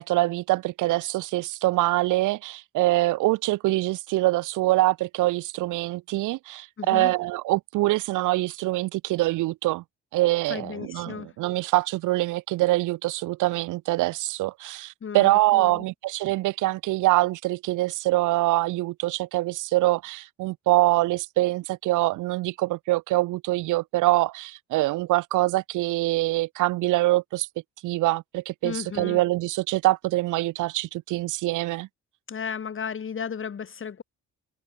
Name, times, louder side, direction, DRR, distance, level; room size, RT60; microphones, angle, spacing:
voice 1, 0.0-9.8 10.1-27.5 27.8-31.9, right 18 dB, 85° right, 0.6 m, -24 dB
voice 2, 6.8-7.1 10.5-11.4 15.0-15.9 28.6-29.2 32.3-34.0, left 7 dB, 40° left, 2.8 m, -34 dB
cardioid pair, 90°, 30 cm